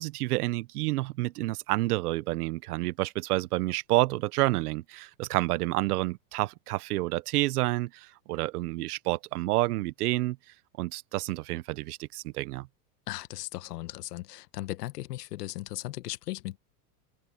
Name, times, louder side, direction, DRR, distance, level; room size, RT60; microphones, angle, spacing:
voice 1, 0.0-10.4 10.8-12.7, right 19 dB, 75° right, 1.0 m, -29 dB
voice 2, 13.1-16.6, left 16 dB, 90° left, 1.2 m, -37 dB
supercardioid pair, 145°, 46 cm